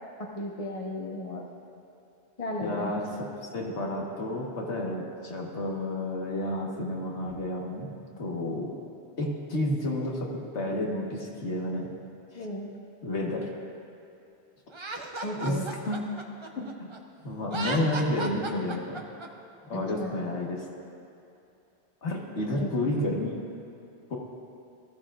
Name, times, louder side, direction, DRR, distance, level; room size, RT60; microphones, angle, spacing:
voice 1, 0.3-1.4 2.4-2.9 8.4-8.6 12.3-12.7 15.2-15.6 19.7-20.1 22.6-22.7, left 2 dB, 30° left, -1 dB, 1.3 m, -34 dB
voice 2, 2.6-7.9 8.2-8.8 9.2-11.9 12.3-12.5 13.0-13.5 15.3-16.1 16.6-16.9 17.2-19.0 19.7-20.7 22.0-23.4 24.1-24.2, left 1 dB, 80° left, -2 dB, 1.8 m, -31 dB
Laughter, 14.7-17.0 17.4-19.3, right 3 dB, 30° right, 0.7 m, -35 dB
19.5 x 13.5 x 2.5 m, 2.7 s
omnidirectional pair, 1.2 m